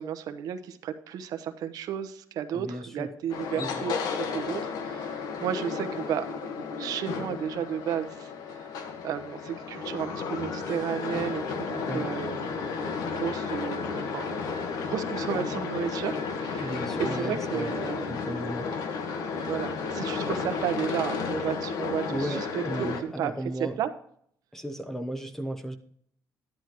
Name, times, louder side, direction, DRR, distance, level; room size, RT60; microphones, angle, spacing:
voice 1, 0.0-6.2 6.6-8.7 9.0-12.5 13.1-14.4 14.8-18.1 19.5-23.3 23.6-23.9, right 9 dB, 70° right, 10 dB, 0.9 m, -33 dB
voice 2, 2.5-3.1 3.5-3.9 11.8-12.1 16.6-18.7 22.1-23.8 24.5-25.8, right 1 dB, 5° left, 8 dB, 0.8 m, -35 dB
sound 1, 3.3-23.0, left 5 dB, 75° left, 1.4 m, -33 dB
12.0 x 10.5 x 3.0 m, 0.63 s
cardioid pair, 150°, 7 cm